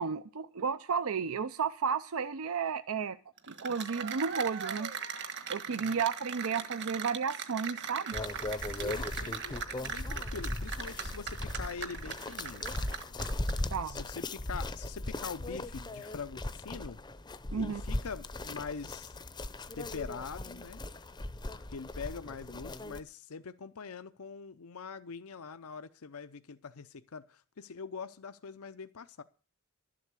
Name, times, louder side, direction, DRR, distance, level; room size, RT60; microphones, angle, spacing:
voice 1, 0.0-3.2 3.5-4.9 5.5-8.2 13.7-14.0 17.5-17.8, right 6 dB, 70° right, 0.6 m, -33 dB
Cheering / Applause, 3.4-13.7, right 6 dB, 55° right, 1.5 m, -39 dB
voice 2, 5.7-6.1 8.8-12.7 13.8-17.0 17.5-19.2 19.8-20.8 21.7-29.2, left 5 dB, 75° left, 0.6 m, -43 dB
sound 1, 8.1-23.0, left 2 dB, 20° left, 0.6 m, -38 dB
12.5 x 7.6 x 8.3 m
head